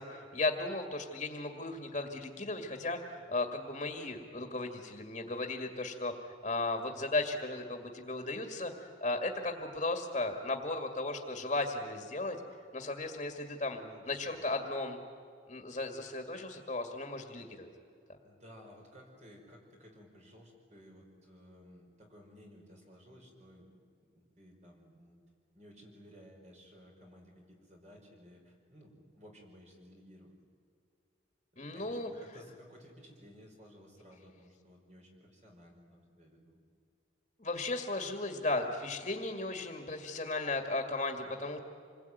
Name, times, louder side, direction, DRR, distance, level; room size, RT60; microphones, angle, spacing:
voice 1, 0.0-6.1 6.4-8.7 9.0-12.4 12.7-13.8 14.1-15.0 15.5-17.7 31.6-32.1 37.4-41.6, left 2 dB, 35° left, 5 dB, 2.1 m, -35 dB
voice 2, 13.8-14.4 18.2-23.7 24.1-25.2 25.5-30.4 31.5-36.6, equal, 35° right, 0 dB, 5.3 m, -56 dB
27.5 x 21.0 x 9.4 m, 2.4 s
head